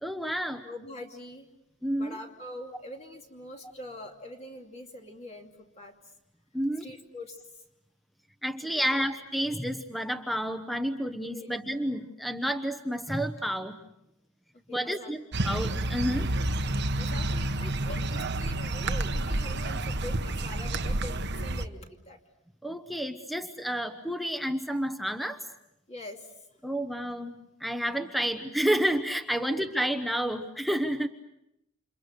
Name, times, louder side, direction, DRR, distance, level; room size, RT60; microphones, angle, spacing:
voice 1, 0.0-0.6 1.8-2.2 6.5-6.9 8.4-13.8 14.7-16.3 22.6-25.4 26.6-31.1, equal, ahead, 7 dB, 1.0 m, -30 dB
voice 2, 0.6-1.5 2.0-5.5 5.8-6.0 6.8-7.6 8.6-8.9 11.3-11.5 14.5-15.1 16.9-22.2 25.9-26.6 29.4-29.7, left 1 dB, 30° left, 2 dB, 2.7 m, -44 dB
sound 1, 15.3-21.7, right 2 dB, 55° right, 1.1 m, -29 dB
29.5 x 28.0 x 6.7 m, 0.85 s
head